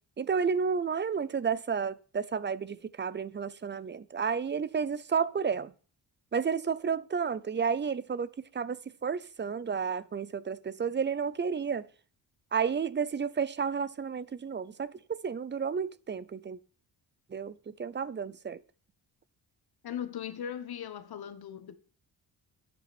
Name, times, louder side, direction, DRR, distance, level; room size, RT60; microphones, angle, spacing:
voice 1, 0.2-5.7 6.3-11.9 12.5-16.6 17.3-18.6, right 6 dB, 25° right, 0.6 m, -31 dB
voice 2, 19.8-21.8, left 9 dB, 60° left, 1.3 m, -38 dB
12.0 x 8.5 x 4.3 m
cardioid pair, 105°, 42 cm